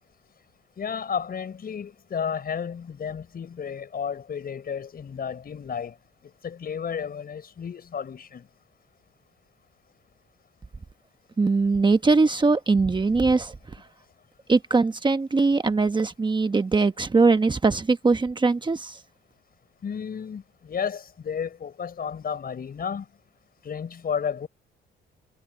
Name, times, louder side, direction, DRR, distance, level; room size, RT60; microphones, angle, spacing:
voice 1, 0.8-5.9 6.4-8.5 19.8-23.1 23.6-24.5, left 7 dB, 50° left, 5.7 m, -32 dB
voice 2, 11.4-13.6 14.5-19.0, right 3 dB, 25° right, 1.1 m, -21 dB
cardioid pair, 90°, 20 cm